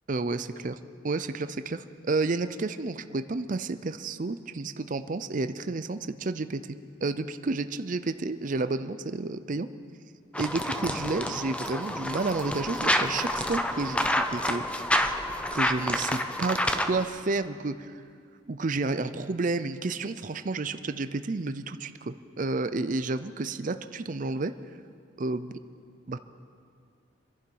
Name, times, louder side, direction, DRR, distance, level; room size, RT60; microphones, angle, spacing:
voice 1, 0.1-0.8 1.0-9.7 10.4-14.8 15.5-17.9 18.5-24.5 25.2-25.6 26.1-26.2, right 3 dB, 45° right, 11 dB, 0.5 m, -31 dB
sound 1, 10.3-17.1, left 1 dB, 5° left, 0.6 m, -28 dB
sound 2, 10.4-15.5, left 1 dB, 45° left, 2.6 m, -52 dB
27.0 x 11.0 x 4.7 m, 2.3 s
head